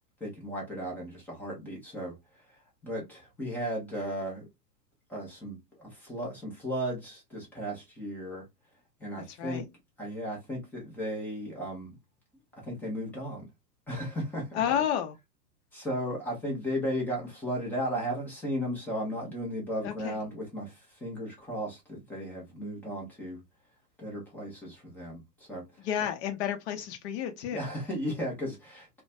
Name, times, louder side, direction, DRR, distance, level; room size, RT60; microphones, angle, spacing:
voice 1, 0.2-2.1 2.5-4.5 5.1-8.4 9.0-9.6 10.0-12.0 12.6-13.5 13.9-14.8 15.7-23.4 24.0-25.9 27.5-29.0, equal, 5° left, 0.4 m, -35 dB
voice 2, 9.3-9.7 14.5-15.1 19.8-20.2 25.8-27.7, left 9 dB, 40° left, 0.7 m, -31 dB
2.4 x 2.2 x 2.3 m
hypercardioid pair, 110°, 50 cm